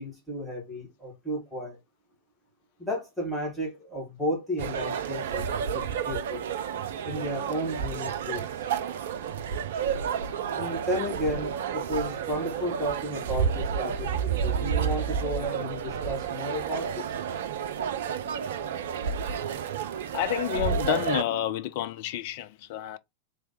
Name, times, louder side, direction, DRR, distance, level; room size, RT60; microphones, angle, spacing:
voice 1, 0.0-1.8 2.8-5.5 5.7-6.4 7.0-8.5 10.5-17.1, equal, ahead, 2.3 m, -33 dB
sound 1, 4.6-21.2, right 7 dB, 60° right, 0.5 m, -30 dB
voice 2, 20.1-23.0, left 12 dB, 50° left, 0.5 m, -29 dB
3.4 x 3.4 x 4.3 m
figure-of-eight pair, 90°, 0 cm